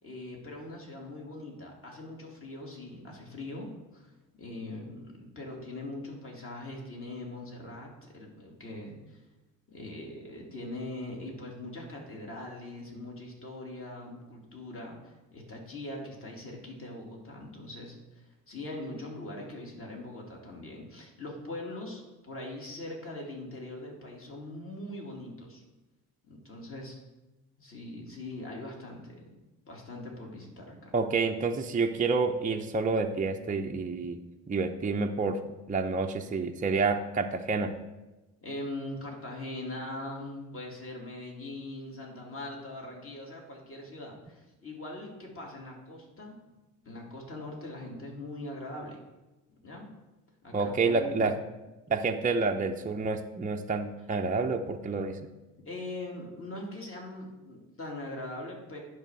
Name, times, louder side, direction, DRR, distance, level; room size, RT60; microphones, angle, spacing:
voice 1, 0.0-9.2 9.7-25.6 26.3-27.0 27.6-29.2 29.7-30.9 38.4-46.4 46.8-49.0 49.6-49.9 50.4-51.2 55.6-58.8, left 2 dB, 35° left, -1 dB, 2.8 m, -41 dB
voice 2, 30.9-34.2 34.5-35.4 35.7-37.7 50.5-51.3 51.9-55.2, right 4 dB, 20° right, 3 dB, 0.7 m, -28 dB
10.0 x 3.5 x 6.3 m, 1.1 s
hypercardioid pair, 60°, 38 cm